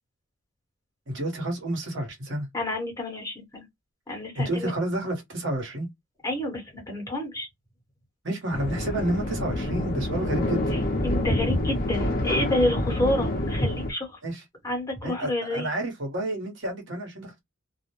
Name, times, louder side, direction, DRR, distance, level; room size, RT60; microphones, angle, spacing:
voice 1, 1.1-2.5 4.3-5.9 8.2-10.6 14.2-14.4 15.0-17.4, right 1 dB, 65° right, 1.1 m, -30 dB
voice 2, 2.5-3.6 4.1-4.7 6.2-7.5 11.0-14.2 14.6-15.7, left 1 dB, 15° left, 1.1 m, -28 dB
sound 1, 8.5-13.9, left 1 dB, 45° left, 0.6 m, -27 dB
2.4 x 2.1 x 3.0 m
head